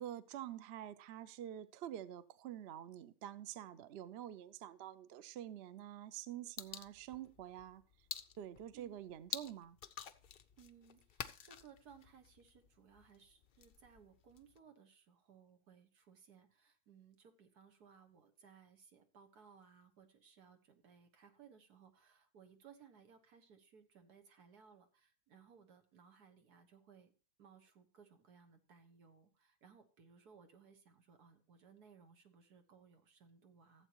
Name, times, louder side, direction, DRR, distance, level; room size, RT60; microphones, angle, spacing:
voice 1, 0.0-7.8 8.4-9.8, right 11 dB, 60° right, 0.7 m, -47 dB
sound 1, 6.6-14.6, left 8 dB, 65° left, 0.5 m, -50 dB
voice 2, 10.6-27.1 27.4-33.9, right 6 dB, 90° right, 1.9 m, -63 dB
15.0 x 8.0 x 3.0 m
omnidirectional pair, 1.6 m